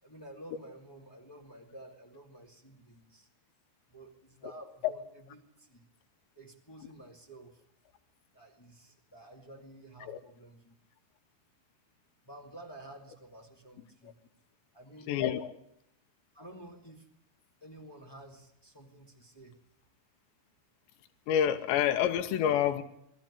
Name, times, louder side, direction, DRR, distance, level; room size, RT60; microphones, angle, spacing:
voice 1, 0.0-3.3 3.9-5.0 5.3-5.9 6.3-7.6 8.3-10.7 12.2-14.2 14.7-15.2 16.3-17.1 17.6-19.6, right 1 dB, 20° left, 0 dB, 0.6 m, -51 dB
voice 2, 15.1-15.5 21.3-22.8, left 10 dB, 90° left, 7 dB, 3.3 m, -28 dB
22.0 x 14.0 x 9.9 m, 0.78 s
omnidirectional pair, 4.9 m